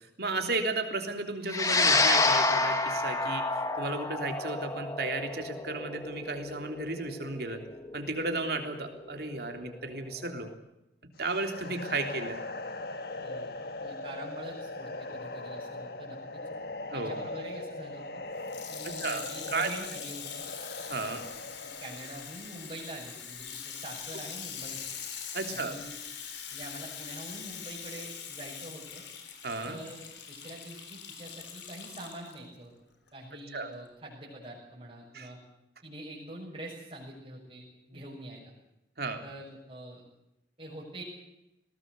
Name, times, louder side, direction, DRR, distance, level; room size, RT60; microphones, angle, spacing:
voice 1, 0.2-7.6 7.9-10.5 11.2-12.4 16.9-17.1 19.0-19.7 20.9-21.2 25.3-25.7 29.4-29.8 33.5-33.7 35.1-35.3 39.0-39.2, right 3 dB, 55° right, 5 dB, 3.4 m, -34 dB
sound 1, 1.5-10.0, left 3 dB, 20° left, 1.7 m, -29 dB
sound 2, 11.2-22.3, left 2 dB, 55° left, 1.5 m, -40 dB
voice 2, 13.2-16.4 16.9-18.2 18.7-20.4 21.0-21.4 21.8-24.9 25.5-26.0 26.5-29.0 29.6-32.7 33.1-35.4 35.8-38.5 39.2-40.0 40.6-41.0, right 1 dB, 30° right, -7 dB, 6.9 m, -45 dB
Water tap faucet / Sink (filling or washing), 18.4-32.4 33.1-33.2, left 7 dB, 75° left, 3.8 m, -43 dB
21.0 x 18.5 x 8.3 m, 0.88 s
head